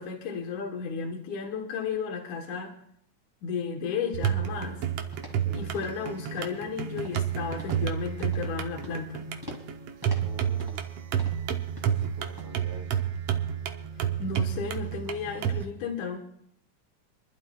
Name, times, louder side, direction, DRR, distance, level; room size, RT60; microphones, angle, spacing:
voice 1, 0.0-2.7 3.4-4.8 5.5-9.2 14.0-16.2, left 5 dB, 85° left, 1 dB, 2.6 m, -33 dB
sound 1, 4.1-15.6, right 9 dB, 70° right, 1.7 m, -30 dB
sound 2, 4.5-4.8 5.1-5.4 5.7-6.1 6.4-6.6 7.0-7.3 7.6-7.9 8.2-8.5 8.8-9.1 9.4-9.7 10.0-10.9 11.2-11.5 11.8-12.1 12.4-12.5, equal, 10° right, 2.0 m, -45 dB
voice 2, 5.4-5.7 10.2-11.1 12.0-13.1, right 4 dB, 90° right, 1 dB, 4.0 m, -47 dB
27.5 x 11.5 x 2.3 m, 0.72 s
omnidirectional pair, 3.4 m